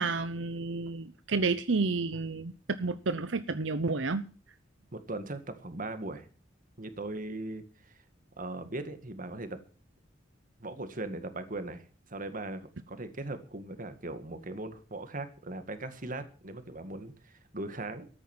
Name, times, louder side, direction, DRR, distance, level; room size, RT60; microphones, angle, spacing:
voice 1, 0.0-2.5 2.8-4.2, right 3 dB, 85° right, 0.8 m, -30 dB
voice 2, 4.9-6.3 6.8-8.0 8.4-9.6 10.6-11.8 12.1-18.1, right 2 dB, 45° right, 2.1 m, -39 dB
13.5 x 10.0 x 7.3 m
head